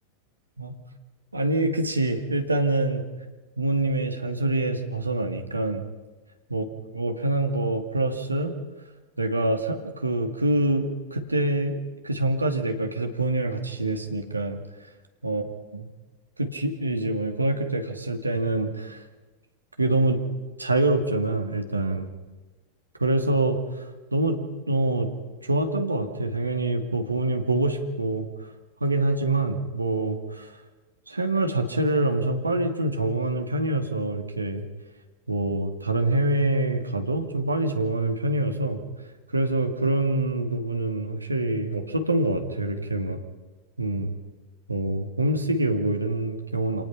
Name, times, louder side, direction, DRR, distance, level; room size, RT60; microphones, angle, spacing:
voice 1, 1.3-3.0 3.6-5.8 6.5-6.6 6.9-8.6 9.2-14.6 15.2-15.4 15.7-15.9 16.4-19.0 19.8-20.2 20.6-22.1 23.0-23.6 24.1-24.4 24.7-25.1 25.4-28.3 28.8-30.5 31.1-34.6 35.3-38.8 39.3-43.2 43.8-44.1 44.7-46.8, right 2 dB, 80° right, 5 dB, 2.2 m, -25 dB
27.0 x 19.0 x 5.8 m, 1.2 s
figure-of-eight pair, 90°, 0 cm